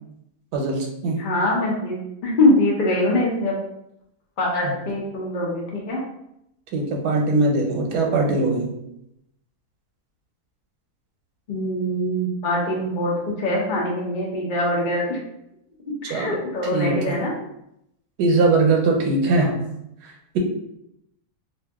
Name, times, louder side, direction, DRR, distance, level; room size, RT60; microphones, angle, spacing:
voice 1, 0.5-1.3 6.7-8.7 16.1-16.4 16.7-17.1 18.2-19.6, right 3 dB, 85° right, 2 dB, 1.2 m, -21 dB
voice 2, 1.0-3.6 4.4-6.0 11.5-15.2 16.1-17.3 19.2-19.5, left 1 dB, 55° left, -3 dB, 0.5 m, -23 dB
2.6 x 2.4 x 3.4 m, 0.80 s
omnidirectional pair, 1.7 m